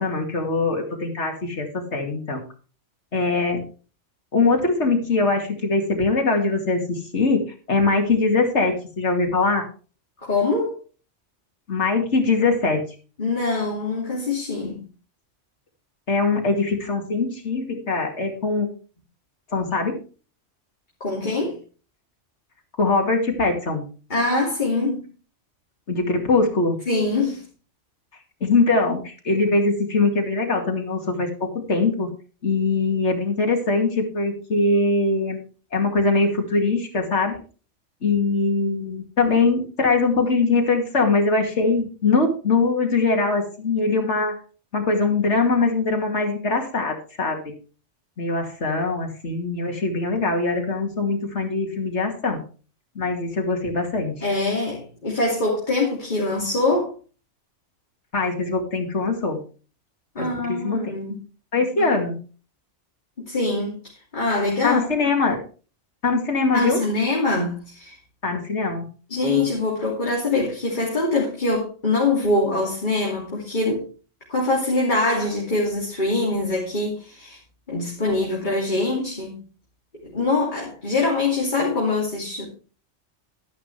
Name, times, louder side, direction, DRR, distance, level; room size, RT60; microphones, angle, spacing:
voice 1, 0.0-2.4 3.1-3.6 4.3-9.7 11.7-12.8 16.1-18.7 19.5-19.9 22.8-23.8 25.9-26.8 28.4-32.1 32.4-35.4 35.7-37.4 38.0-44.4 44.7-47.5 48.2-52.4 53.0-54.3 58.1-59.4 60.2-60.9 61.5-62.2 64.6-65.4 66.0-66.8 68.2-68.9, left 3 dB, 70° left, 3 dB, 2.6 m, -22 dB
voice 2, 10.2-10.7 13.2-14.8 21.0-21.6 24.1-25.0 26.9-27.4 54.2-56.9 60.1-61.2 61.8-61.9 63.2-63.8 64.1-64.8 66.5-68.0 69.1-73.9 74.3-77.4 77.7-79.4 80.0-82.5, left 2 dB, 40° left, -3 dB, 3.0 m, -23 dB
12.0 x 11.0 x 3.2 m, 0.36 s
omnidirectional pair, 1.2 m